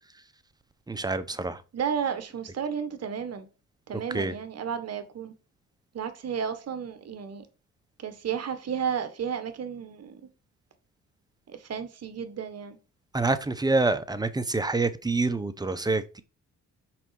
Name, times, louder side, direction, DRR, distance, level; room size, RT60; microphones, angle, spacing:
voice 1, 0.9-1.6 4.1-4.3 13.1-16.2, right 3 dB, 15° right, 0.9 m, -27 dB
voice 2, 1.7-3.5 3.9-5.3 5.9-7.5 8.0-10.2 11.5-12.8, right 7 dB, 55° right, 1.6 m, -32 dB
6.0 x 5.1 x 4.8 m
cardioid pair, 90°, 30 cm